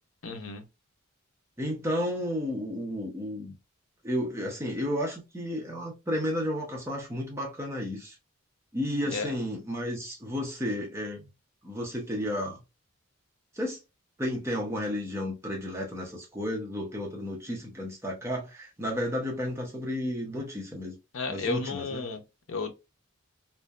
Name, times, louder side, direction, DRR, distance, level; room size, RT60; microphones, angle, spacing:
voice 1, 0.2-0.6 9.0-9.3 21.1-22.2 22.5-22.7, left 4 dB, 70° left, 0.6 m, -32 dB
voice 2, 1.6-3.6 4.0-8.2 8.7-11.2 11.6-12.6 13.5-13.8 14.2-21.0 21.3-22.1, equal, 15° right, 0.6 m, -32 dB
2.6 x 2.1 x 2.3 m
head